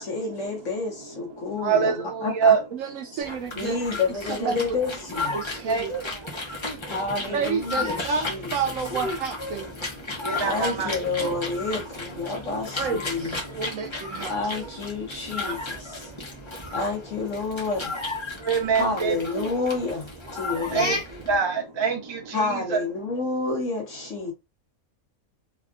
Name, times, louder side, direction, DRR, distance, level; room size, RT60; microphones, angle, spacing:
voice 1, 0.0-2.5 3.1-3.2 3.6-5.4 6.8-8.5 10.4-13.3 14.3-16.1 16.7-18.0 18.8-21.0 22.3-24.3, left 3 dB, 60° left, 1.3 m, -29 dB
voice 2, 1.3-2.6 5.5-6.9 7.2-7.4 9.9-11.4 13.4-14.3 15.0-16.8 17.8-17.9 18.3-19.2 19.4-19.5 20.4-22.8 24.2-24.3, right 6 dB, 45° right, 0.3 m, -28 dB
voice 3, 2.7-3.8 4.4-4.7 5.3-5.9 7.3-9.8 12.8-14.3, right 5 dB, 70° right, 0.9 m, -30 dB
sound 1, 3.2-21.4, left 2 dB, 30° left, 0.6 m, -34 dB
3.4 x 2.3 x 2.4 m
omnidirectional pair, 1.5 m